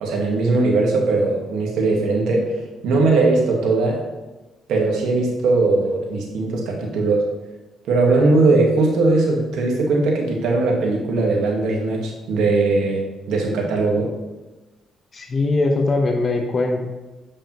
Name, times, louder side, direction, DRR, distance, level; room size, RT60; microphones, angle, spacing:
voice 1, 0.0-2.4 2.8-4.0 4.7-7.2 7.9-13.0 13.3-14.1, right 3 dB, 80° right, -1 dB, 1.4 m, -19 dB
voice 2, 15.1-16.8, left 2 dB, 40° left, 2 dB, 0.9 m, -21 dB
7.3 x 5.2 x 3.0 m, 1.1 s
cardioid pair, 90°, 0 cm